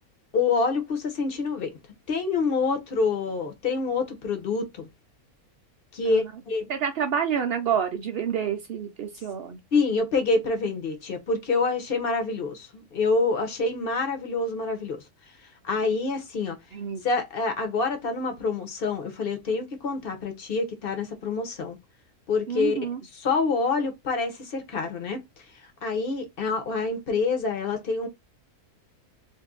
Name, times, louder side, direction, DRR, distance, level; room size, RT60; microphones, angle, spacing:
voice 1, 0.3-1.8 2.1-4.9 5.9-6.7 9.7-15.0 15.6-16.6 17.0-21.8 22.3-22.8 23.2-25.2 25.8-28.1, left 4 dB, 45° left, 0.9 m, -26 dB
voice 2, 6.7-9.6 16.7-17.0 22.5-23.0, right 8 dB, 80° right, 0.5 m, -28 dB
2.6 x 2.6 x 3.5 m
omnidirectional pair, 1.6 m